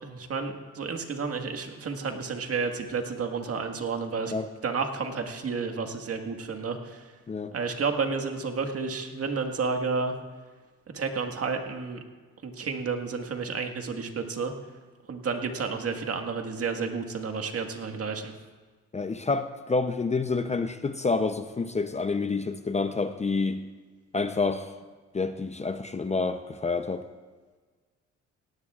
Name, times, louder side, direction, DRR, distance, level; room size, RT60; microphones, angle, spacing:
voice 1, 0.0-4.3 4.6-7.1 7.5-10.1 10.9-12.0 12.4-14.5 15.1-18.3, right 5 dB, 50° right, 4 dB, 1.7 m, -31 dB
voice 2, 18.9-23.6 24.1-24.7 25.1-27.1, left 4 dB, 20° left, 9 dB, 0.6 m, -28 dB
18.0 x 17.0 x 2.4 m, 1.4 s
cardioid pair, 90°, 30 cm